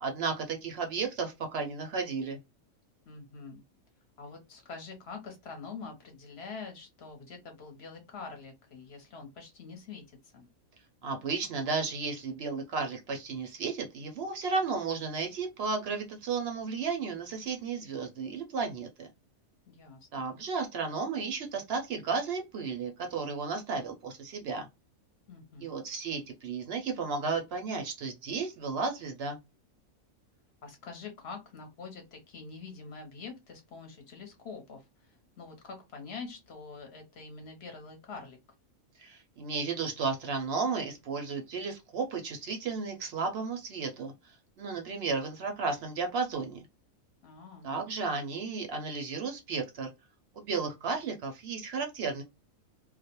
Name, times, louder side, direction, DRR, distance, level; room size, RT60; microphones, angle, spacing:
voice 1, 0.0-2.4 11.0-19.1 20.1-24.7 25.6-29.4 39.0-46.7 47.6-49.9 50.4-52.2, right 4 dB, 65° right, 0.7 m, -33 dB
voice 2, 3.1-3.6 4.2-10.5 19.7-20.4 25.3-25.7 30.6-38.4 47.2-47.7, left 4 dB, 60° left, 0.8 m, -45 dB
2.4 x 2.0 x 2.8 m
omnidirectional pair, 1.4 m